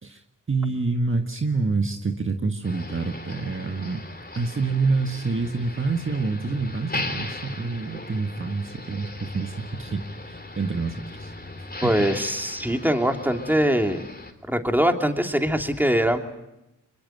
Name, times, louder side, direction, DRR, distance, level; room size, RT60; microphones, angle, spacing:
voice 1, 0.0-4.0 4.3-11.3 11.8-12.1, right 3 dB, 40° right, 5 dB, 1.7 m, -27 dB
Motor vehicle (road), 2.6-14.3, left 2 dB, 30° left, 3.7 m, -38 dB
voice 2, 11.8-14.0 14.5-16.2, equal, 5° right, 4 dB, 3.1 m, -22 dB
23.5 x 21.5 x 9.4 m, 0.92 s
cardioid pair, 50°, 33 cm